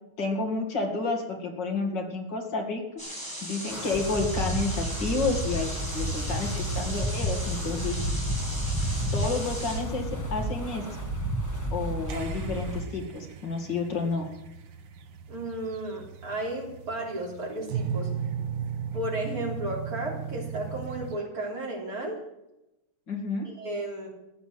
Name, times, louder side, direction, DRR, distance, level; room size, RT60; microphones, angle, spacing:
voice 1, 0.2-2.8 3.4-8.0 9.1-10.8 11.7-14.3 23.1-23.5, left 3 dB, 55° left, 2 dB, 2.9 m, -30 dB
sound 1, 3.0-9.8, equal, 10° right, 6.4 m, -38 dB
Wind, 3.7-12.8, right 1 dB, 10° left, 1.5 m, -31 dB
sound 2, 8.4-21.2, right 7 dB, 65° right, 1.6 m, -38 dB
voice 2, 15.3-18.1 18.9-22.2 23.4-24.1, right 1 dB, 40° right, -2 dB, 4.2 m, -33 dB
15.0 x 9.8 x 7.7 m, 0.92 s
omnidirectional pair, 2.3 m